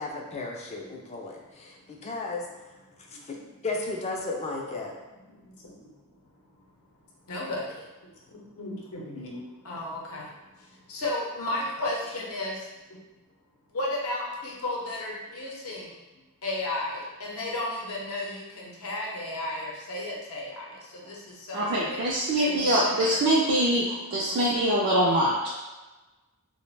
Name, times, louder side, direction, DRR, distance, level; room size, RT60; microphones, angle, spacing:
voice 1, 0.0-2.5 3.3-3.4 3.6-4.9, left 3 dB, 30° left, 0 dB, 0.4 m, -34 dB
voice 2, 2.9-3.4 5.1-5.9 7.3-13.0 13.7-16.0 16.4-23.3 23.6-24.2, left 1 dB, 70° left, -3 dB, 0.6 m, -35 dB
voice 3, 21.5-25.5, right 1 dB, 55° right, -6 dB, 0.4 m, -24 dB
2.3 x 2.1 x 3.2 m, 1.1 s
head